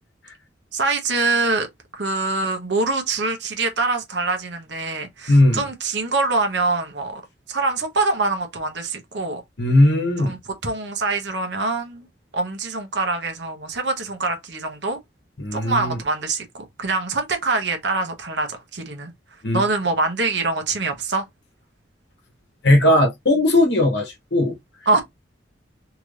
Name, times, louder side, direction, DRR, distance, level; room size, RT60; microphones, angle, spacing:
voice 1, 0.7-1.7 1.9-7.2 7.5-9.4 10.2-12.1 12.3-15.0 15.5-19.1 19.5-21.2 24.9-25.0, right 3 dB, 70° right, 0.9 m, -24 dB
voice 2, 5.3-5.6 9.6-10.3 15.4-16.0 19.4-19.6 22.6-24.6, left 1 dB, 65° left, 0.9 m, -17 dB
2.9 x 2.5 x 3.1 m
head